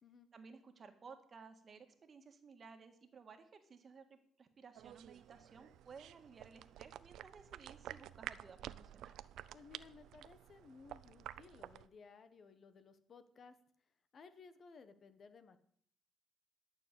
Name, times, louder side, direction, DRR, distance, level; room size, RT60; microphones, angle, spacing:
voice 1, 0.3-9.1, right 5 dB, 45° right, 6 dB, 1.7 m, -57 dB
sound 1, 4.8-11.9, right 12 dB, 85° right, 0.4 m, -51 dB
voice 2, 9.5-13.6 14.1-15.6, left 5 dB, 50° left, 11 dB, 1.2 m, -59 dB
11.5 x 6.8 x 8.3 m, 0.63 s
cardioid pair, 90°, 0 cm